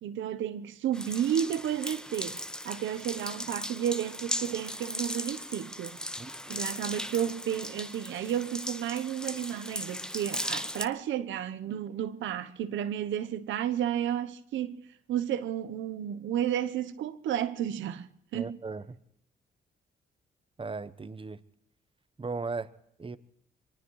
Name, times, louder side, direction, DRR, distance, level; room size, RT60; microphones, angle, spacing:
voice 1, 0.0-6.0 6.5-14.8 15.1-18.6, right 10 dB, 85° right, 0.9 m, -32 dB
sound 1, 0.9-10.9, left 1 dB, 5° left, 0.7 m, -37 dB
voice 2, 6.2-6.6 18.3-19.0 20.6-21.4 22.2-22.7 23.0-23.2, right 4 dB, 30° right, 0.9 m, -37 dB
24.0 x 19.0 x 3.2 m
cardioid pair, 65°, 19 cm